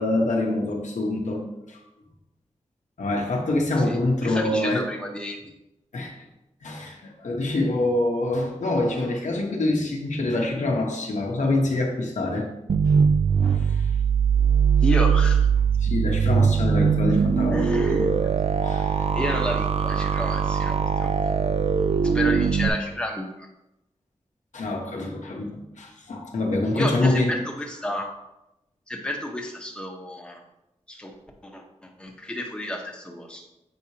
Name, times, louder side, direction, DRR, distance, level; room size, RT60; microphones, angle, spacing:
voice 1, 0.0-1.8 3.0-4.9 5.9-6.1 6.6-12.5 13.4-13.9 15.8-18.1 18.6-18.9 22.0-22.4 24.5-27.4, left 2 dB, 90° left, 0 dB, 1.1 m, -26 dB
voice 2, 3.8-5.4 14.8-15.4 17.5-18.3 19.0-21.1 22.1-23.5 26.7-28.1 28.9-30.4 30.9-31.1 31.4-33.4, left 1 dB, 10° left, 0 dB, 1.0 m, -31 dB
sound 1, 12.7-22.7, right 6 dB, 60° right, 0.4 m, -21 dB
7.6 x 4.7 x 2.9 m, 0.91 s
wide cardioid pair, 110°, 12 cm